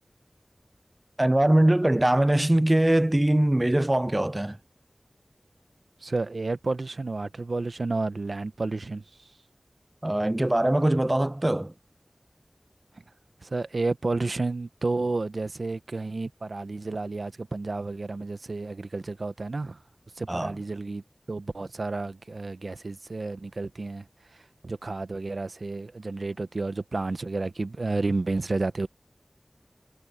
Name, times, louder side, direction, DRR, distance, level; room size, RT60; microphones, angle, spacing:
voice 1, 1.2-4.6 10.0-11.7 20.3-20.6, right 1 dB, 25° right, 0.5 m, -22 dB
voice 2, 6.0-9.0 13.4-19.8 20.2-21.0 21.3-24.0 24.6-28.9, right 3 dB, 80° right, 0.9 m, -31 dB
wide cardioid pair, 55°, 0 cm